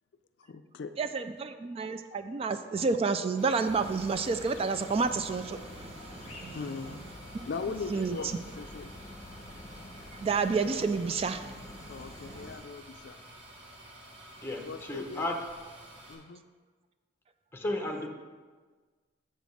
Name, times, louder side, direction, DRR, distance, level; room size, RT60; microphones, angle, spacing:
voice 1, 0.4-0.9 6.5-7.0 7.4-8.9 11.9-13.2 14.6-15.3 16.1-16.4, left 4 dB, 65° left, 10 dB, 0.4 m, -39 dB
voice 2, 1.0-6.6 7.9-8.2 10.2-11.6, right 4 dB, 30° right, 10 dB, 0.3 m, -30 dB
sound 1, 3.4-16.1, right 1 dB, 85° right, 2.0 m, -51 dB
sound 2, 3.7-12.6, left 1 dB, 35° left, 1.0 m, -48 dB
voice 3, 14.4-15.3 17.5-18.1, left 1 dB, 10° left, 2 dB, 0.9 m, -34 dB
7.5 x 5.2 x 6.3 m, 1.4 s
head